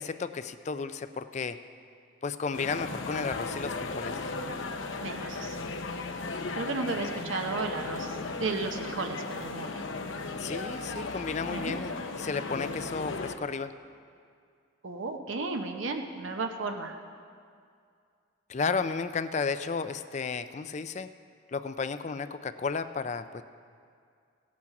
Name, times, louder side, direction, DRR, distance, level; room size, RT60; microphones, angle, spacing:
voice 1, 0.0-1.6 2.2-4.2 10.4-13.7 18.5-21.1 21.5-23.4, left 5 dB, 35° left, 11 dB, 0.4 m, -33 dB
sound 1, 2.5-13.4, left 3 dB, 75° left, 0.8 m, -36 dB
voice 2, 5.0-5.6 6.5-8.1 8.4-9.8 11.5-11.8 14.8-16.9, right 3 dB, 80° right, 4 dB, 0.8 m, -33 dB
16.5 x 8.4 x 5.9 m, 2.2 s
head